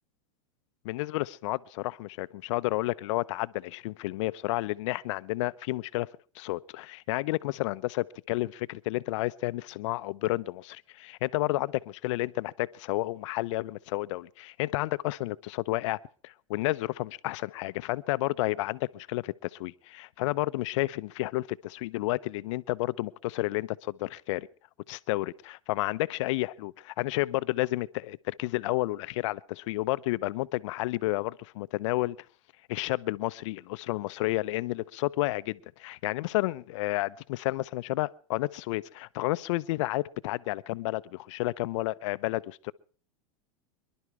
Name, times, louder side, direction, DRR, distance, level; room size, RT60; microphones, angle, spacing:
voice 1, 0.8-6.1 6.4-16.0 16.2-24.5 24.9-32.2 32.7-42.7, left 19 dB, 65° left, 0.7 m, -31 dB
25.0 x 11.5 x 4.7 m
hypercardioid pair, 105°, 17 cm